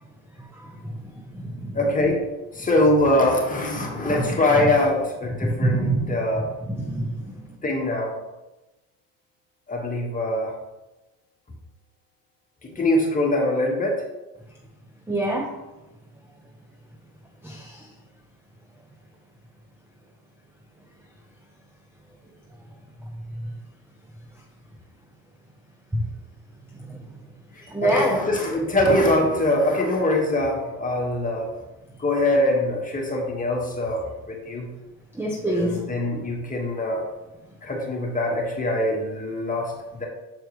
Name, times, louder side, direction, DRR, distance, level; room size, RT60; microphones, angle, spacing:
voice 1, 0.4-1.8 3.8-4.2 4.5-4.6 5.4-6.1 6.7-7.3 15.1-15.5 17.4-17.9 25.9-26.0 26.8-27.0 27.7-28.2 35.1-35.8, right 1 dB, 5° right, 0 dB, 0.7 m, -26 dB
voice 2, 1.7-2.3 2.5-6.5 7.6-8.2 9.7-10.5 12.6-14.0 27.8-31.5 32.0-34.7 35.5-37.0 37.6-40.1, left 1 dB, 15° left, -1 dB, 1.6 m, -23 dB
6.9 x 4.5 x 3.1 m, 1.0 s
supercardioid pair, 105°, 45 cm